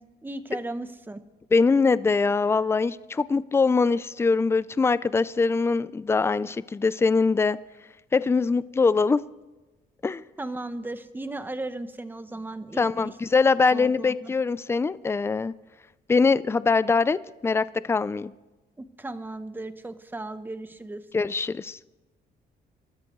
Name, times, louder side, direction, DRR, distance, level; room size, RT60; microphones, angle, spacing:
voice 1, 0.2-1.2 10.4-13.1 13.7-14.3 18.8-21.0, right 2 dB, 10° right, 0.8 m, -36 dB
voice 2, 1.5-7.6 8.1-9.2 10.0-10.2 12.8-15.5 16.1-17.2 17.4-18.3 21.1-21.8, left 4 dB, 15° left, 0.4 m, -22 dB
27.5 x 13.5 x 3.1 m
cardioid pair, 135°, 17 cm